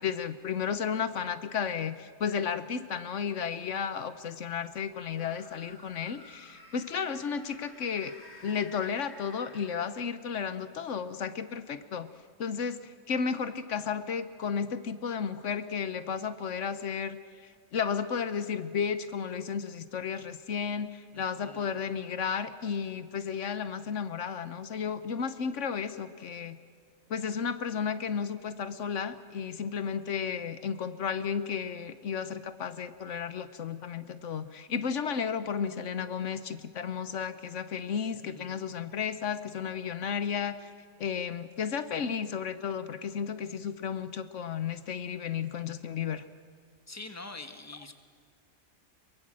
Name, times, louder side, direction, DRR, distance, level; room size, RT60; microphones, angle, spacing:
voice 1, 0.0-8.1 8.4-12.1 12.4-17.2 17.7-26.6 27.1-40.7 41.0-46.2, left 6 dB, 80° left, 12 dB, 1.3 m, -33 dB
sound 1, 5.2-10.3, left 2 dB, 65° left, 3.0 m, -52 dB
voice 2, 21.1-21.8 38.2-38.6 46.9-47.9, left 2 dB, 15° left, 7 dB, 1.5 m, -45 dB
23.5 x 22.0 x 7.6 m, 2.1 s
omnidirectional pair, 1.2 m